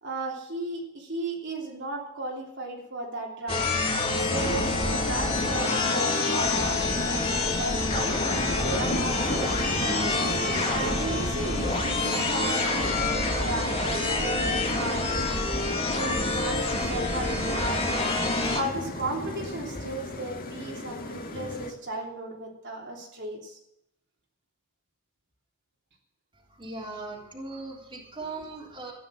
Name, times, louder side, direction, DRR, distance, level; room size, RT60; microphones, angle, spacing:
voice 1, 0.0-3.7 4.1-10.0 10.6-15.5 15.9-18.1 18.5-23.6, right 2 dB, 55° right, -1 dB, 3.1 m, -35 dB
sound 1, 3.5-18.6, left 2 dB, 25° left, 2.4 m, -27 dB
sound 2, 4.3-21.7, left 1 dB, 45° left, 2.0 m, -35 dB
voice 2, 26.4-28.9, right 3 dB, 25° right, -2 dB, 3.4 m, -39 dB
15.0 x 10.0 x 6.3 m, 0.83 s
head